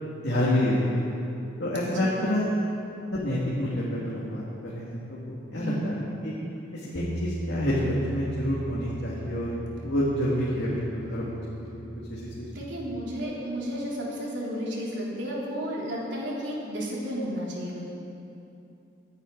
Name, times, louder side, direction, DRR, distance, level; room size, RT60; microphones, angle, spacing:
voice 1, 0.2-1.1 1.6-2.6 3.1-6.0 6.2-6.3 6.7-9.5 9.8-11.2 11.6-12.5, equal, 80° left, -7 dB, 2.1 m, -28 dB
voice 2, 1.8-2.2 5.5-5.9 12.5-17.9, equal, 75° right, -5 dB, 3.4 m, -33 dB
Bass guitar, 6.9-13.2, equal, 50° left, 0.9 m, -38 dB
24.0 x 9.3 x 3.9 m, 2.7 s
head